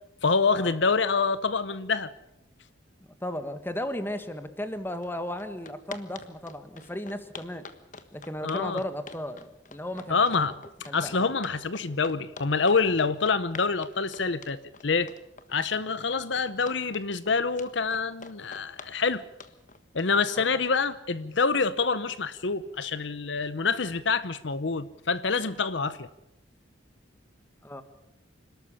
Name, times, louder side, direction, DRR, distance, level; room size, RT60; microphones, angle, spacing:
voice 1, 0.2-2.1 8.4-8.8 10.1-10.5 10.9-15.1 15.5-19.2 19.9-26.1, left 4 dB, 65° left, 15 dB, 0.8 m, -26 dB
voice 2, 3.2-7.6 8.1-10.3 10.9-11.3 20.4-20.5 27.6-27.8, left 1 dB, 10° left, 10 dB, 1.5 m, -35 dB
sound 1, 5.0-5.1 5.4-21.0, left 4 dB, 40° left, 1.4 m, -46 dB
27.5 x 13.0 x 8.4 m, 0.89 s
head